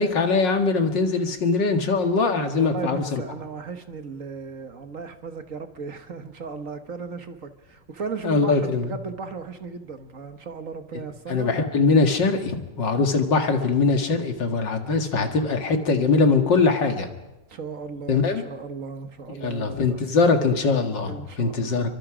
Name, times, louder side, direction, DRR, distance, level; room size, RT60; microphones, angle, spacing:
voice 1, 0.0-3.2 8.2-8.9 11.3-17.1 18.1-18.4 19.4-21.9, left 4 dB, 75° left, 5 dB, 2.6 m, -22 dB
voice 2, 2.6-11.5 15.9-16.2 17.5-20.0 21.1-21.9, right 5 dB, 50° right, 8 dB, 1.5 m, -36 dB
29.0 x 24.0 x 5.0 m, 1.0 s
omnidirectional pair, 1.9 m